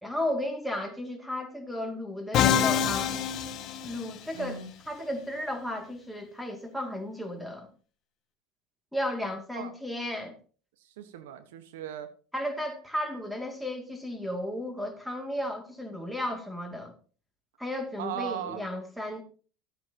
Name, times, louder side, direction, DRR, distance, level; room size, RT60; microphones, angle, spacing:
voice 1, 0.0-3.1 3.8-7.7 8.9-10.4 12.3-16.9 17.6-19.2, left 1 dB, ahead, 2.6 m, -34 dB
Musical instrument, 2.3-4.4, left 9 dB, 55° left, 1.0 m, -26 dB
voice 2, 4.3-4.7 9.5-9.7 11.0-12.1 18.0-18.6, right 8 dB, 80° right, 1.4 m, -37 dB
13.5 x 9.2 x 3.0 m
hypercardioid pair, 90°, 0 cm